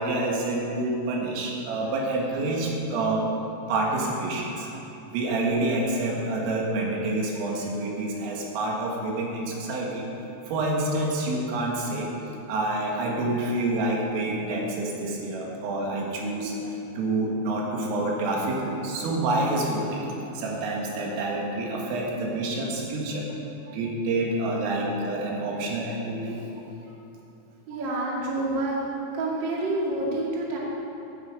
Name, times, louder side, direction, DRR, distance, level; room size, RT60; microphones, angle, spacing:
voice 1, 0.0-3.2 3.7-4.7 5.1-10.0 10.5-12.1 12.5-20.0 20.4-23.4 23.7-26.4, right 2 dB, 75° right, -2 dB, 4.3 m, -28 dB
voice 2, 27.7-28.7 29.1-30.6, right 2 dB, 50° right, -4 dB, 1.4 m, -28 dB
15.0 x 9.4 x 5.3 m, 3.0 s
omnidirectional pair, 6.0 m